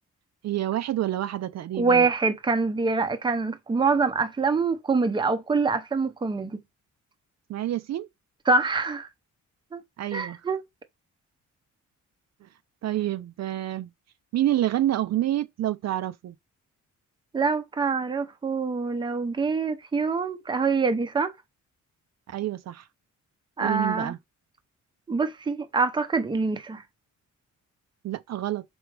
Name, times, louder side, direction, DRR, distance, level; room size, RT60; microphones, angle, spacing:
voice 1, 0.4-2.1 7.5-8.1 10.0-10.4 12.4-12.5 12.8-13.9 14.3-16.4 22.3-22.9 23.6-24.2 28.0-28.6, right 13 dB, 60° right, 0.5 m, -28 dB
voice 2, 1.7-6.6 8.5-9.1 9.7-9.8 10.1-10.6 17.3-21.3 23.6-24.1 25.1-26.8, right 4 dB, 15° right, 0.6 m, -25 dB
6.1 x 4.7 x 3.3 m
wide cardioid pair, 165°, 31 cm